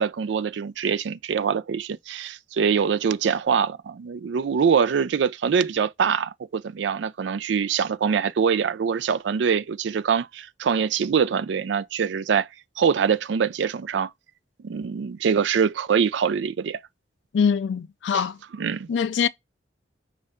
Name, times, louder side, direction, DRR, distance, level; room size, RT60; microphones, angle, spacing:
voice 1, 0.0-12.5 12.8-14.1 14.6-16.8 18.6-18.9, right 6 dB, 70° right, 0.4 m, -24 dB
voice 2, 17.3-18.4 18.9-19.3, left 6 dB, 70° left, 0.3 m, -23 dB
5.3 x 2.5 x 3.4 m
head